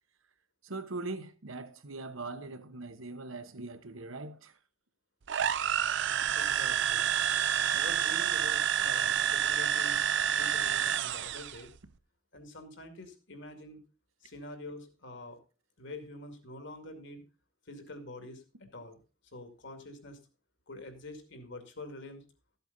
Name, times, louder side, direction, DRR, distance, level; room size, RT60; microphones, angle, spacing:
voice 1, 0.6-4.5, right 3 dB, 80° right, 1.1 m, -41 dB
sound 1, 5.3-11.6, right 9 dB, 60° right, 0.5 m, -29 dB
voice 2, 6.3-7.1 7.7-10.0 10.3-11.7 12.3-13.8 14.2-15.4 15.8-17.2 17.7-19.0 19.3-20.2 20.7-22.2, left 2 dB, 60° left, 2.2 m, -46 dB
13.5 x 8.1 x 4.0 m
head